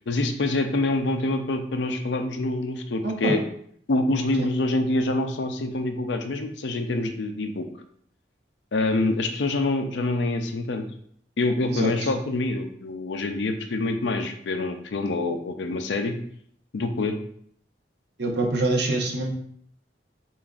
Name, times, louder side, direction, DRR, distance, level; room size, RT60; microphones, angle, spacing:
voice 1, 0.1-3.4 3.9-7.7 8.7-10.8 11.4-16.1 16.7-17.2, left 2 dB, 85° left, 7 dB, 0.5 m, -26 dB
voice 2, 18.2-19.3, right 2 dB, 65° right, 1 dB, 0.8 m, -25 dB
6.9 x 2.5 x 2.4 m, 0.64 s
head